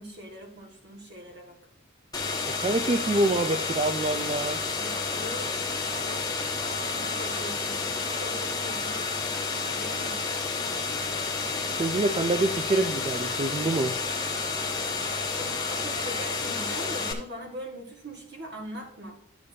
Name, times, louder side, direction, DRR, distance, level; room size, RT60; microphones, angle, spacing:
voice 1, 0.0-1.6 4.8-11.2 15.3-19.2, equal, 60° right, 1 dB, 1.9 m, -42 dB
sound 1, 2.1-17.1, left 4 dB, 20° left, 1.2 m, -30 dB
voice 2, 2.5-4.6 11.8-13.9, right 2 dB, 30° right, 7 dB, 0.4 m, -26 dB
11.0 x 7.0 x 2.8 m, 0.72 s
head